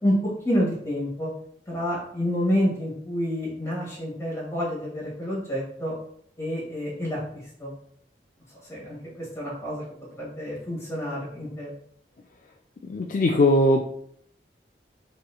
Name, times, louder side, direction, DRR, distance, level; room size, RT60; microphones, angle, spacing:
voice 1, 0.4-1.3 1.7-5.9 6.4-7.2 7.6-7.7 8.7-9.8 10.1-11.7, equal, 15° left, -6 dB, 1.8 m, -28 dB
voice 2, 12.8-13.9, left 1 dB, 45° left, 1 dB, 0.3 m, -20 dB
6.0 x 3.0 x 2.2 m, 0.65 s
head